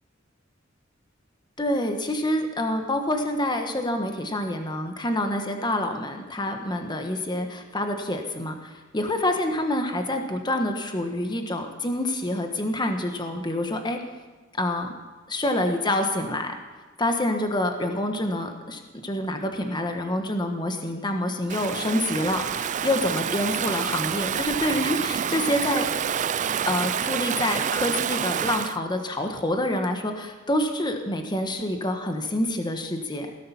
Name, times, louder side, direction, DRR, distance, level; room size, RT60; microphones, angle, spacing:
voice 1, 1.6-14.0 14.6-14.9 15.3-16.5 17.0-25.9 26.7-33.3, left 1 dB, 20° left, 5 dB, 1.3 m, -27 dB
Stream / Ocean, 21.5-28.8, right 8 dB, 40° right, 0.4 m, -28 dB
18.0 x 12.5 x 5.8 m, 1.3 s
head